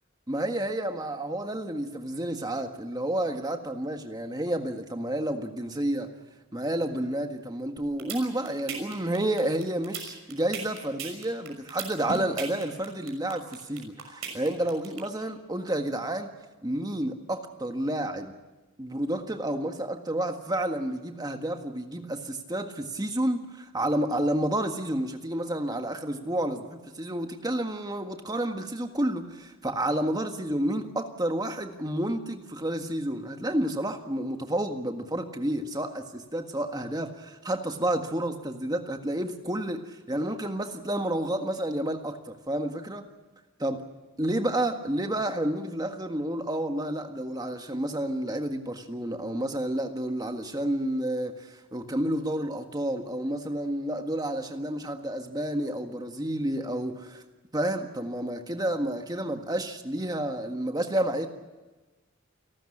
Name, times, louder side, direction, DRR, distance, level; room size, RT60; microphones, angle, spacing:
voice 1, 0.3-6.1 6.5-16.3 16.6-18.3 18.8-43.1 43.6-43.8 44.2-57.2 57.5-61.3, right 1 dB, 20° right, 6 dB, 1.6 m, -30 dB
sound 1, 7.8-15.0, right 6 dB, 80° right, 6.0 m, -36 dB
29.0 x 13.0 x 10.0 m, 1.2 s
head